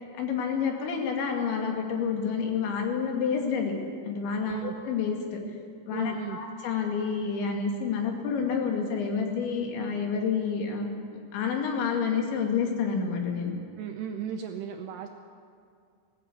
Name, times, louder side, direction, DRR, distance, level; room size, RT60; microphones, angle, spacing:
voice 1, 0.2-3.7 4.1-5.4 5.9-13.6, left 6 dB, 70° left, 2 dB, 4.3 m, -29 dB
voice 2, 5.9-6.4 13.8-15.1, right 8 dB, 75° right, 5 dB, 2.5 m, -35 dB
19.5 x 16.5 x 8.4 m, 2.2 s
omnidirectional pair, 5.6 m